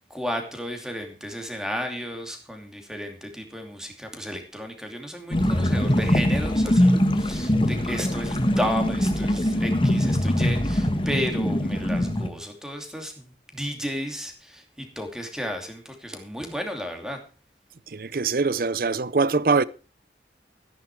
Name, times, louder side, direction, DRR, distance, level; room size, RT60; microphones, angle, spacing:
voice 1, 0.1-17.2, equal, 5° right, 2.7 m, -33 dB
sound 1, 5.3-12.3, left 1 dB, 30° left, 1.5 m, -22 dB
voice 2, 17.9-19.6, right 4 dB, 55° right, 0.6 m, -23 dB
14.0 x 10.5 x 4.8 m
head